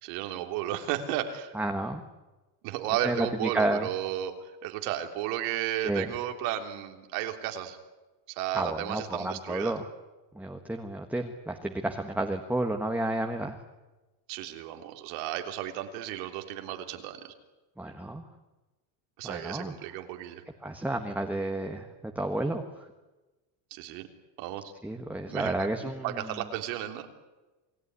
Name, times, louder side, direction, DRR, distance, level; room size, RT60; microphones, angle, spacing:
voice 1, 0.0-1.5 2.6-4.4 4.6-7.8 8.3-9.7 14.3-17.3 19.2-20.4 23.7-24.1 24.4-24.7 25.3-27.1, right 12 dB, 85° right, 5 dB, 3.5 m, -34 dB
voice 2, 1.5-2.0 3.0-3.9 5.8-6.1 8.5-9.9 10.3-13.6 17.8-18.2 19.2-19.7 20.6-22.9 24.8-26.4, right 1 dB, 5° right, 4 dB, 1.4 m, -31 dB
28.5 x 19.0 x 9.7 m, 1.1 s
cardioid pair, 150°, 47 cm